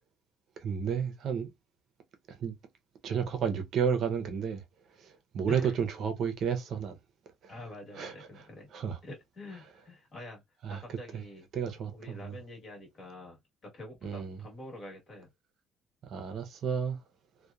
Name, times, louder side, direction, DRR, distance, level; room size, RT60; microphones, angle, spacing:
voice 1, 0.6-1.5 2.3-2.6 3.0-4.6 5.0-7.0 7.4-7.5 8.0-8.3 8.7-9.0 10.6-10.8 11.1-11.2 11.5-12.4 14.0-14.4 16.0-17.0, right 7 dB, 50° right, 0.6 m, -32 dB
voice 2, 7.5-8.7 9.0-10.4 10.7-15.3, left 1 dB, 35° left, 1.2 m, -46 dB
2.9 x 2.1 x 2.3 m
cardioid pair, 170°, 0 cm